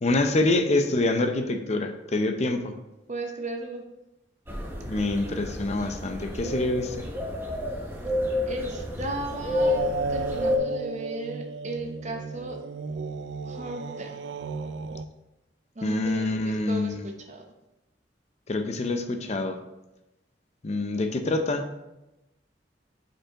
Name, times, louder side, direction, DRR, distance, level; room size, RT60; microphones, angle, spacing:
voice 1, 0.0-2.7 4.8-6.9 15.8-17.1 18.5-19.6 20.6-21.6, left 2 dB, 40° left, 6 dB, 0.5 m, -26 dB
voice 2, 3.1-3.8 8.4-9.8 10.1-12.6 13.5-14.3 15.8-17.4, right 2 dB, 45° right, 3 dB, 0.8 m, -35 dB
sound 1, 4.5-10.6, left 1 dB, 15° right, 0.7 m, -30 dB
sound 2, 9.6-15.1, right 4 dB, 80° right, 0.3 m, -34 dB
7.7 x 4.4 x 2.9 m, 0.96 s
head